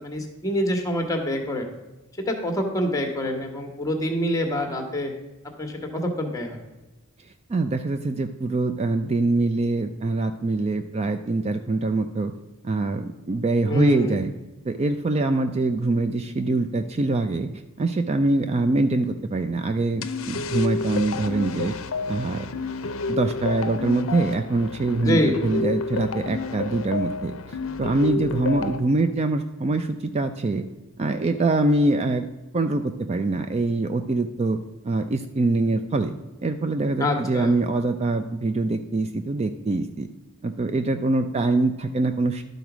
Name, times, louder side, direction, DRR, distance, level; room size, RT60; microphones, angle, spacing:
voice 1, 0.0-1.7 2.3-5.1 5.6-6.6 13.6-14.2 25.0-25.4 37.0-37.6, equal, 15° left, 4 dB, 1.2 m, -26 dB
voice 2, 7.5-12.3 12.6-14.3 14.6-17.5 17.8-21.7 22.1-22.5 23.1-30.6 31.0-32.3 32.5-34.6 34.8-36.1 36.4-40.1 40.4-42.4, right 2 dB, 30° right, 8 dB, 0.3 m, -24 dB
sound 1, 20.0-28.8, left 4 dB, 65° left, 0.6 m, -30 dB
12.0 x 4.0 x 6.0 m, 1.1 s
head